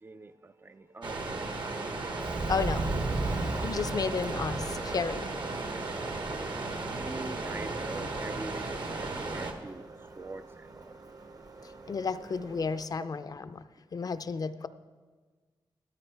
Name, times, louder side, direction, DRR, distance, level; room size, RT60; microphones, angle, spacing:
voice 1, 0.0-2.5 6.2-11.0, right 3 dB, 25° right, 0.3 m, -45 dB
sound 1, 1.0-9.5, right 3 dB, 60° right, 1.2 m, -35 dB
Subway metro underground, 2.2-12.8, right 2 dB, 45° right, 0.8 m, -39 dB
voice 2, 2.5-2.9 3.3-5.4 11.9-13.6 13.9-14.7, left 5 dB, 45° left, 0.5 m, -32 dB
13.5 x 13.0 x 3.4 m
wide cardioid pair, 105°, 9 cm